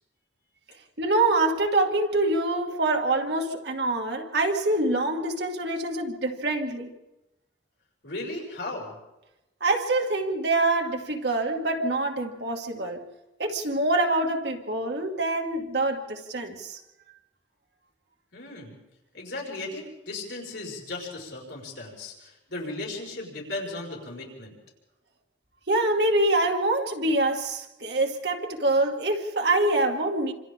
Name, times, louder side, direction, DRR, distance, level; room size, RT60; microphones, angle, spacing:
voice 1, 1.0-6.9 9.6-13.0 13.4-16.8 25.7-30.3, right 2 dB, 60° right, 2 dB, 2.4 m, -25 dB
voice 2, 8.0-9.0 18.3-18.8 19.1-24.5, left 2 dB, 75° left, -3 dB, 5.7 m, -36 dB
28.5 x 26.5 x 3.8 m, 0.98 s
head